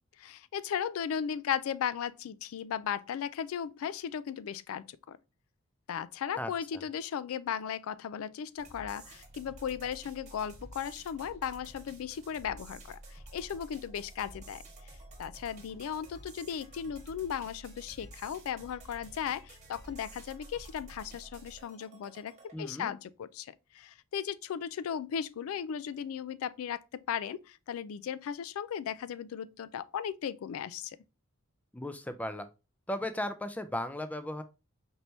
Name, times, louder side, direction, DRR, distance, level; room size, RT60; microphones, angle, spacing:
voice 1, 0.2-5.2 5.9-14.6 15.2-31.0, left 8 dB, 85° left, 0.3 m, -36 dB
voice 2, 6.4-6.8 22.5-22.9 31.7-32.5 32.9-34.4, left 1 dB, 5° left, 0.4 m, -36 dB
sound 1, 8.6-22.5, right 1 dB, 35° right, 1.2 m, -51 dB
4.4 x 3.3 x 2.6 m
head